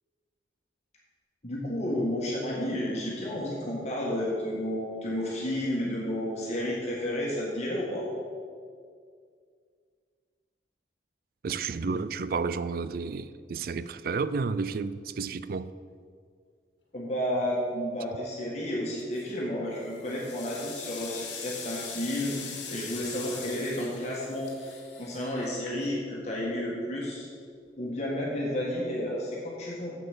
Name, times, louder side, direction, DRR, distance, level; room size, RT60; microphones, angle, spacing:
voice 1, 1.4-8.1 16.9-27.3 27.8-29.9, left 1 dB, 40° left, 1.7 m, -31 dB
voice 2, 11.4-15.7, right 4 dB, 55° right, 0.4 m, -31 dB
sound 1, 19.0-19.4 19.9-26.1, left 6 dB, 90° left, 1.7 m, -41 dB
7.9 x 7.7 x 6.7 m
head